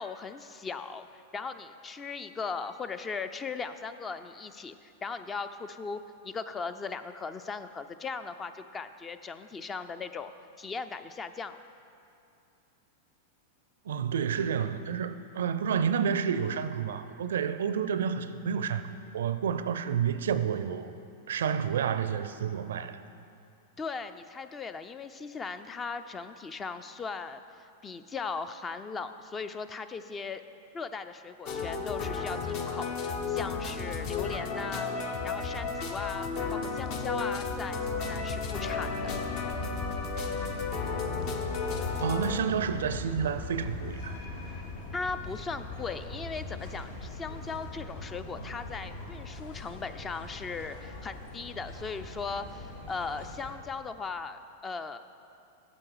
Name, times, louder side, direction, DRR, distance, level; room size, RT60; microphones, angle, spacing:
voice 1, 0.0-10.3 10.6-11.6 23.8-30.4 30.7-34.9 35.2-38.9 44.9-55.0, left 4 dB, 20° left, 0.4 m, -38 dB
voice 2, 13.9-18.9 19.1-20.9 21.3-23.0 42.0-44.2, right 7 dB, 75° right, 0.4 m, -30 dB
sound 1, 31.4-42.4, left 5 dB, 50° left, 0.8 m, -33 dB
sound 2, 35.7-53.5, left 2 dB, 70° left, 1.7 m, -41 dB
9.6 x 7.1 x 4.8 m
hypercardioid pair, 100°, 0 cm